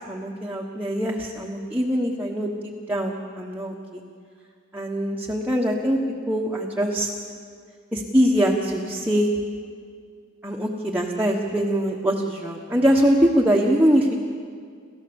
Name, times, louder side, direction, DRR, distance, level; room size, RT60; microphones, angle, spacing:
voice 1, 0.1-4.0 4.7-6.0 6.3-7.1 7.9-9.3 10.4-14.2, equal, 10° right, -2 dB, 1.3 m, -23 dB
28.5 x 14.0 x 7.1 m, 2.1 s
head